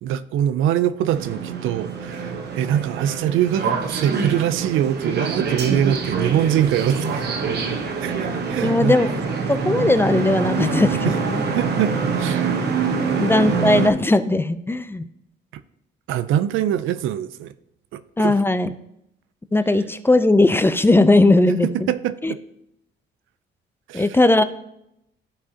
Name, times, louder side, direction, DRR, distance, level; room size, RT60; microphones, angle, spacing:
voice 1, 0.0-7.4 8.0-9.0 11.0-11.2 11.5-12.6 13.0-13.5 15.5-15.6 16.1-17.5 17.9-18.4 21.6-22.4 23.9-24.1, right 10 dB, 80° right, 14 dB, 0.4 m, -23 dB
sound 1, 1.1-13.9, right 5 dB, 55° right, 1.1 m, -25 dB
voice 2, 8.6-9.1 9.5-11.4 13.2-15.0 18.2-18.7 19.5-21.9 22.2-22.3 23.9-24.4, left 2 dB, 10° left, 11 dB, 0.4 m, -18 dB
12.5 x 4.7 x 2.8 m, 0.81 s
cardioid pair, 90°, 20 cm